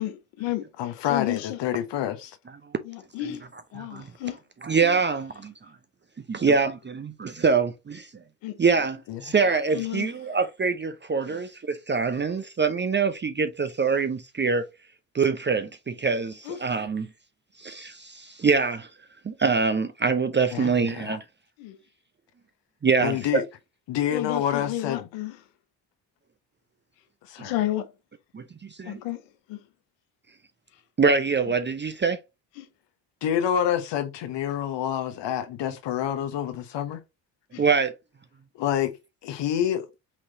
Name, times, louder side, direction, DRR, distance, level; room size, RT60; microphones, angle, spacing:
voice 1, 0.0-1.6 2.8-3.4 3.7-4.4 4.8-5.0 8.4-8.6 9.7-10.1 11.3-11.4 16.4-16.7 21.6-21.8 24.1-25.4 27.4-27.9 28.9-29.2 29.5-29.6 32.6-32.7 37.5-37.6, left 14 dB, 85° left, 0.9 m, -32 dB
voice 2, 0.8-2.4 9.1-9.2 20.5-21.2 23.0-23.4 23.9-25.1 27.2-27.6 33.2-37.0 38.5-39.0 39.2-39.9, left 10 dB, 70° left, 1.1 m, -28 dB
voice 3, 3.8-4.1 4.6-5.5 6.3-8.1 8.6-14.7 15.1-17.1 17.6-18.9 19.3-21.2 22.8-23.4 27.4-27.5 28.3-28.4 28.8-29.0 31.0-32.2 37.6-37.9, right 5 dB, 25° right, 0.6 m, -24 dB
5.9 x 3.1 x 2.8 m
supercardioid pair, 60°, 45 cm